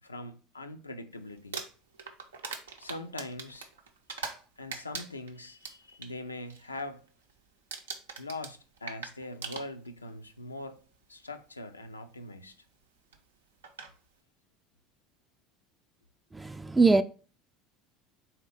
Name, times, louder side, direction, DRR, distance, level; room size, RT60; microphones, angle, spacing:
voice 1, 0.0-1.6 2.8-3.7 4.6-7.0 8.2-10.8 11.1-12.6, left 2 dB, 90° left, 0.4 m, -42 dB
Crumpling crinkling, 1.4-4.4 4.7-6.1 6.5-6.8 7.1-7.4 7.7-10.1 11.0-11.1 13.1-13.2 13.6-13.9, right 5 dB, 80° right, 0.5 m, -41 dB
voice 2, 16.3-17.0, right 3 dB, 10° right, 0.3 m, -22 dB
3.8 x 2.9 x 4.8 m
figure-of-eight pair, 70°, 0 cm